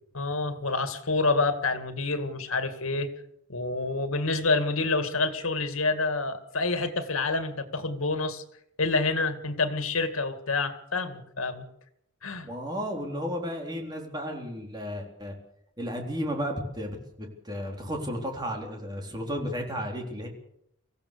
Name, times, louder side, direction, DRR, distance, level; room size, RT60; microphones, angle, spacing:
voice 1, 0.1-3.1 3.5-8.4 8.8-11.7 12.2-12.5, left 3 dB, 90° left, 9 dB, 2.3 m, -28 dB
voice 2, 12.4-15.3 15.8-20.3, equal, 20° right, 2 dB, 3.8 m, -33 dB
24.0 x 16.0 x 6.9 m, 0.73 s
head